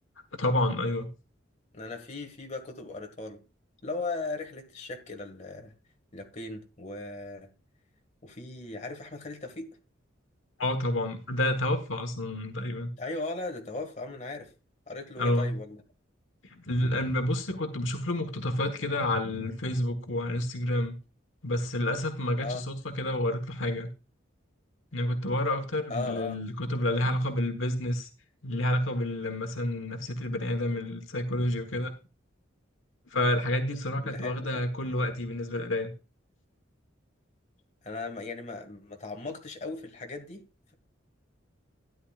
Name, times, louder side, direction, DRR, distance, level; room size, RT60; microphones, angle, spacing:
voice 1, 0.3-1.1 10.6-12.9 15.2-15.6 16.4-21.0 21.4-23.9 24.9-28.1 28.4-31.9 33.1-35.9, left 1 dB, 80° left, 1.3 m, -29 dB
voice 2, 1.7-3.4 3.8-5.7 6.1-7.5 8.2-9.8 13.0-14.5 14.9-15.8 22.4-22.6 25.9-26.4 34.0-34.3 37.8-40.4, left 3 dB, 40° left, 1.9 m, -37 dB
12.5 x 10.0 x 2.4 m
head